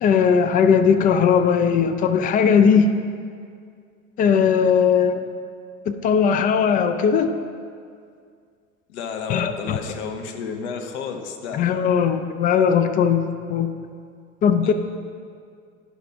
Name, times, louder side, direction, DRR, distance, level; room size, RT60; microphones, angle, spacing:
voice 1, 0.0-2.9 4.2-5.2 5.9-7.3 9.3-9.8 11.5-13.7 14.4-14.7, left 7 dB, 25° left, 9 dB, 0.3 m, -18 dB
voice 2, 8.9-11.6 14.6-14.7, left 5 dB, 60° left, 5 dB, 0.9 m, -32 dB
9.8 x 5.7 x 3.6 m, 2.2 s
figure-of-eight pair, 65°, 38 cm